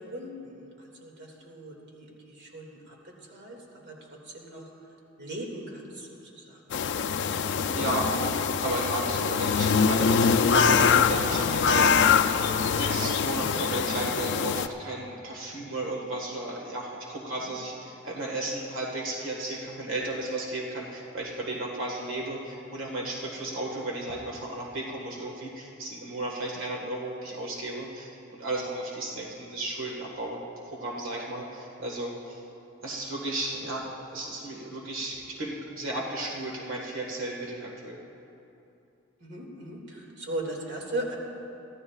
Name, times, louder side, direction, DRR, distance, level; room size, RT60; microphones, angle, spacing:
voice 1, 0.0-4.7 5.2-6.6 7.6-7.9 8.1-8.3 17.5-17.6 39.2-41.2, right 1 dB, 55° right, -1 dB, 2.2 m, -39 dB
sound 1, 6.7-14.7, left 6 dB, 60° left, 0.4 m, -24 dB
voice 2, 7.7-8.1 8.6-12.2 12.7-30.4 30.6-32.4 32.8-38.0, right 1 dB, 85° right, -2 dB, 1.6 m, -34 dB
24.5 x 15.0 x 2.4 m, 2.8 s
head